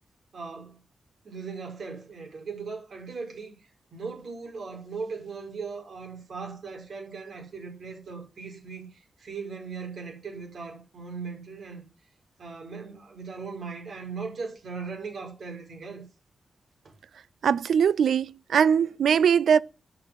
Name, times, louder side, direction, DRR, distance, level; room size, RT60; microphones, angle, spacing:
voice 1, 0.3-0.8 1.2-3.6 3.9-11.9 12.4-16.1 16.8-16.9, right 4 dB, 65° right, 5.4 m, -38 dB
voice 2, 17.4-19.6, right 7 dB, 85° right, 0.5 m, -21 dB
10.5 x 6.9 x 7.5 m
cardioid pair, 80°, 0 cm